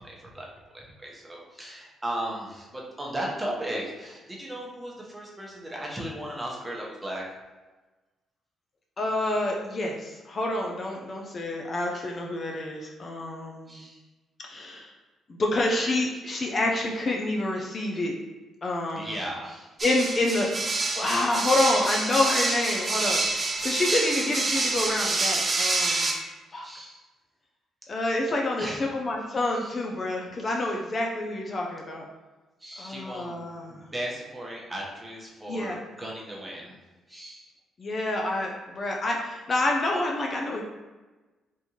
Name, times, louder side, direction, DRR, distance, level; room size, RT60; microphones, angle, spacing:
voice 1, 0.0-7.2 13.7-14.0 18.9-19.7 26.6-27.0 28.6-28.8 29.5-29.7 30.5-30.6 32.6-36.8 37.1-37.5, right 1 dB, 15° right, -3 dB, 0.8 m, -36 dB
voice 2, 9.0-13.8 14.4-14.9 15.3-18.1 18.6-19.1 19.8-20.7 20.9-26.1 26.5-26.7 27.9-32.1 32.8-33.8 35.5-35.8 37.8-40.6, left 2 dB, 40° left, 0 dB, 0.5 m, -28 dB
sound 1, 19.8-26.1, right 3 dB, 35° right, 0.5 m, -27 dB
3.6 x 2.6 x 2.9 m, 1.2 s
cardioid pair, 90°, 0 cm